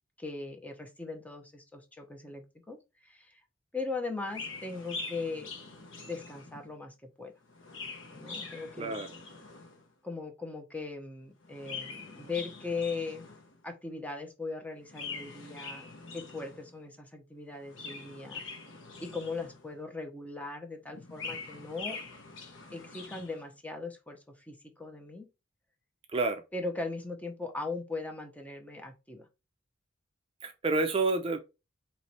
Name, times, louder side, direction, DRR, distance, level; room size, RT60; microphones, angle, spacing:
voice 1, 0.2-2.8 3.0-3.4 3.7-5.5 6.1-7.3 8.1-9.0 10.0-13.2 13.6-18.4 19.0-22.0 22.7-25.3 26.5-29.3, left 3 dB, 10° left, 0.7 m, -39 dB
Chirp tweet, 4.3-6.7 7.4-9.9 11.4-13.6 14.8-16.7 17.5-19.8 20.9-23.4, left 4 dB, 80° left, 0.8 m, -44 dB
voice 2, 8.8-9.1 26.1-26.4 30.4-31.4, right 3 dB, 30° right, 0.5 m, -29 dB
3.1 x 3.0 x 4.1 m
head